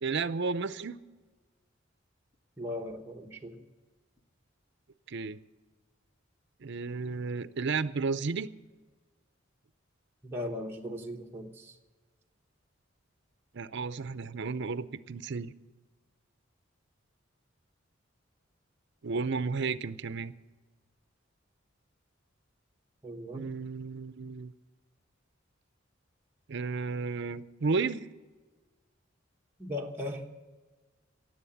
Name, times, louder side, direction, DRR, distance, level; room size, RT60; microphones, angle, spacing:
voice 1, 0.0-1.0 5.1-5.4 6.6-8.5 13.5-15.5 19.0-20.3 23.3-24.5 26.5-28.1, right 4 dB, 60° right, 14 dB, 0.6 m, -33 dB
voice 2, 2.6-3.6 10.2-11.8 23.0-23.5 29.6-30.3, left 1 dB, 10° right, -1 dB, 1.1 m, -38 dB
18.0 x 7.7 x 8.5 m, 1.3 s
head